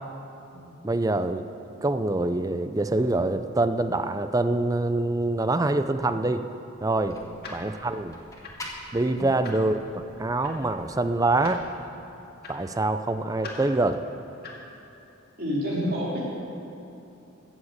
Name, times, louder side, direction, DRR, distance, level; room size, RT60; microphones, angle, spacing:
voice 1, 0.8-1.4 1.8-6.4 6.8-7.2 7.5-8.2 8.9-9.8 10.2-11.6 12.5-14.0, right 2 dB, 15° right, 10 dB, 0.4 m, -25 dB
sound 1, 6.7-11.7, left 1 dB, 15° left, 1.5 m, -46 dB
sound 2, 7.4-14.8, left 3 dB, 50° left, 1.9 m, -45 dB
voice 2, 15.4-16.3, equal, 45° right, -6 dB, 3.7 m, -30 dB
15.0 x 7.4 x 8.1 m, 2.9 s
head